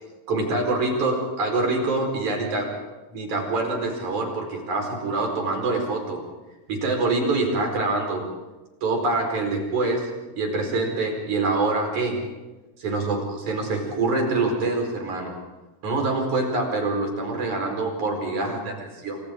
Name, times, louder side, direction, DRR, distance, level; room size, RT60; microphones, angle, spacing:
voice 1, 0.3-2.7 3.1-6.2 6.7-8.3 8.8-10.1 10.4-12.2 12.8-15.3 15.8-19.2, right 3 dB, 75° right, 2 dB, 6.0 m, -25 dB
29.5 x 26.5 x 3.8 m, 1.1 s
omnidirectional pair, 3.4 m